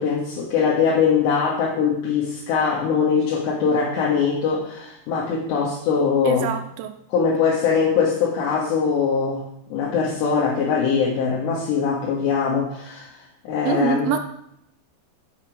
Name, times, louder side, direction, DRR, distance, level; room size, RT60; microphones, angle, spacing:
voice 1, 0.0-6.5 7.1-14.1, left 6 dB, 80° left, -5 dB, 3.9 m, -22 dB
voice 2, 6.2-7.0 13.7-14.2, right 8 dB, 75° right, 6 dB, 2.4 m, -24 dB
13.0 x 5.6 x 5.2 m, 0.76 s
omnidirectional pair, 4.9 m